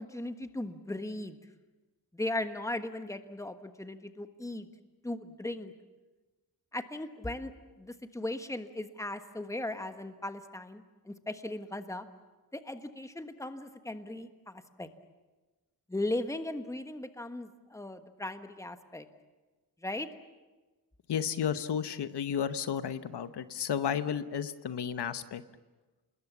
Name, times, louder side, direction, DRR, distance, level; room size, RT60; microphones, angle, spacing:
voice 1, 0.0-1.4 2.1-4.7 5.0-5.7 6.7-7.5 7.8-12.0 12.5-14.9 15.9-19.1 19.8-20.1, left 1 dB, 10° left, 8 dB, 1.3 m, -37 dB
voice 2, 21.1-25.4, left 8 dB, 90° left, 12 dB, 1.0 m, -32 dB
28.0 x 20.5 x 7.3 m, 1.2 s
wide cardioid pair, 130°, 39 cm